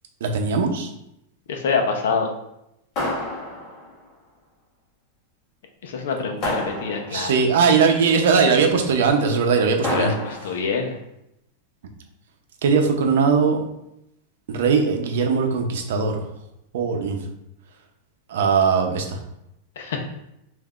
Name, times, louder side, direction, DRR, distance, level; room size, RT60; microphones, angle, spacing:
voice 1, 0.2-0.9 7.1-10.1 12.6-13.6 14.5-16.2 16.7-17.2 18.3-19.2, right 5 dB, 70° right, 3 dB, 0.6 m, -20 dB
voice 2, 1.5-2.3 5.8-7.3 9.8-11.0 19.8-20.0, left 5 dB, 80° left, 3 dB, 0.7 m, -25 dB
sound 1, 3.0-4.0 6.4-7.4 9.8-10.7, left 1 dB, 30° left, 1.2 m, -29 dB
5.5 x 2.6 x 2.4 m, 0.83 s
supercardioid pair, 165°, 0 cm